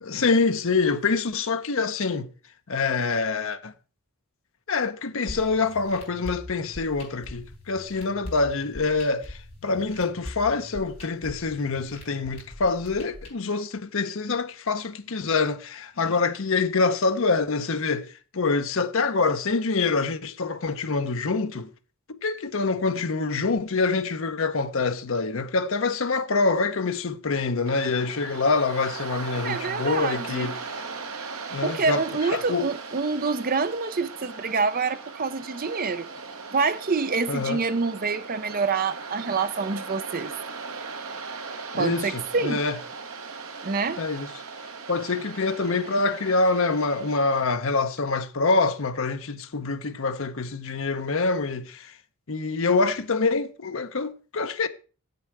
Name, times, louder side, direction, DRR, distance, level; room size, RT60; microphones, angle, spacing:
voice 1, 0.0-2.3 2.7-3.7 4.7-21.7 22.1-30.6 31.5-32.0 32.3-32.7 37.3-37.6 41.7-42.8 44.0-44.3 44.9-51.9 52.3-54.7, left 4 dB, 60° left, 0.8 m, -25 dB
sound 1, 5.3-13.3, left 1 dB, 25° left, 4.8 m, -42 dB
Waves surf, 27.7-47.4, right 4 dB, 70° right, 1.2 m, -38 dB
voice 2, 29.4-30.5 31.6-36.1 36.5-40.3 41.8-42.6 43.6-44.0, right 4 dB, 40° right, 0.6 m, -26 dB
7.8 x 6.8 x 6.0 m
head